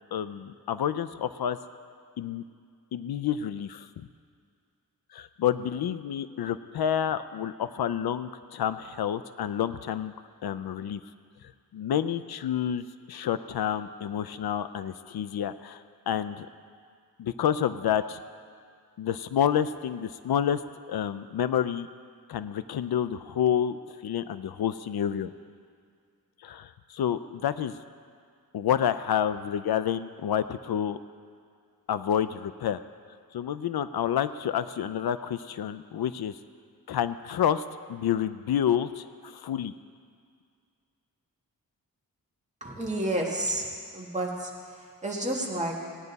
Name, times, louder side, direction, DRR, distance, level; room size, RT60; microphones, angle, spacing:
voice 1, 0.1-1.6 2.2-2.4 2.9-4.1 5.1-10.1 10.4-11.0 11.7-16.5 17.2-18.2 19.0-20.6 20.9-21.9 22.3-23.8 24.0-25.3 26.4-27.8 28.5-31.0 31.9-32.8 33.3-36.4 36.9-39.7, left 9 dB, 80° left, 13 dB, 0.5 m, -29 dB
voice 2, 42.6-45.7, right 1 dB, 20° right, -2 dB, 1.8 m, -31 dB
18.0 x 9.8 x 4.0 m, 2.2 s
wide cardioid pair, 135°, 37 cm